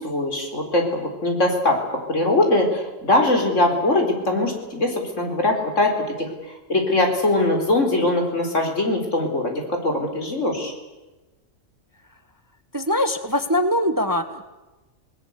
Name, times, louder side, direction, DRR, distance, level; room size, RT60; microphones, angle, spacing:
voice 1, 0.0-6.3 6.7-10.7, left 2 dB, 65° left, 3 dB, 4.7 m, -21 dB
voice 2, 12.7-14.5, left 1 dB, 15° right, 10 dB, 1.2 m, -22 dB
28.0 x 19.5 x 8.2 m, 1.1 s
omnidirectional pair, 1.4 m